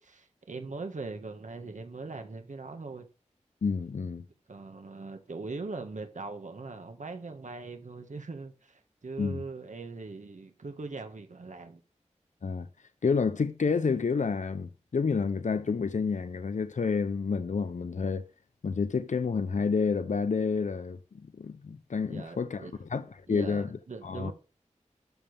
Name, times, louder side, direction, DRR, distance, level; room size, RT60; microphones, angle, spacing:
voice 1, 0.0-3.1 4.5-11.8 22.1-22.8 23.3-24.3, right 3 dB, 85° right, 1.6 m, -41 dB
voice 2, 3.6-4.3 9.2-9.4 12.4-12.7 13.0-18.2 18.6-21.0 21.3-23.7 24.0-24.3, left 5 dB, 85° left, 0.7 m, -29 dB
12.5 x 7.1 x 3.4 m
wide cardioid pair, 50°, 12 cm